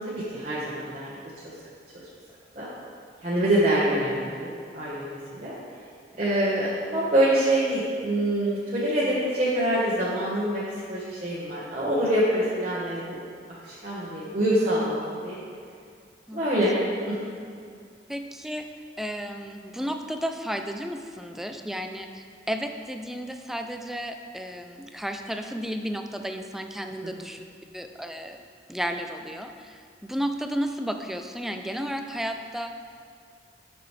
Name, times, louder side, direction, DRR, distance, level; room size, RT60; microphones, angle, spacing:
voice 1, 0.1-1.2 2.5-2.7 3.2-5.5 6.2-10.6 10.9-13.2 13.6-15.4 16.3-16.8 17.1-17.2 27.0-27.1, right 1 dB, 40° right, -9 dB, 1.2 m, -25 dB
voice 2, 18.1-18.7 19.0-27.4 27.7-28.4 28.7-32.7, equal, ahead, 5 dB, 0.4 m, -33 dB
10.0 x 5.9 x 3.3 m, 2.3 s
head